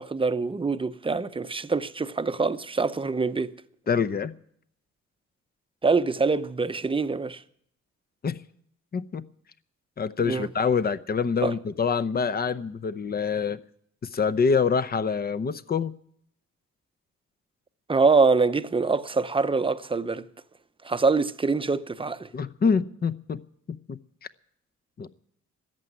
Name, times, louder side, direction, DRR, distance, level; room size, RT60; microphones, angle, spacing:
voice 1, 0.0-3.5 5.8-7.4 10.3-10.5 11.4-11.5 17.9-20.3 20.8-22.3, right 4 dB, 15° right, 0.7 m, -24 dB
voice 2, 3.9-4.3 8.2-8.4 8.9-9.2 10.0-13.6 14.1-15.9 22.3-23.4 23.7-24.0 25.0-25.1, left 5 dB, 30° left, 0.7 m, -26 dB
14.0 x 9.0 x 9.7 m
cardioid pair, 90°, 30 cm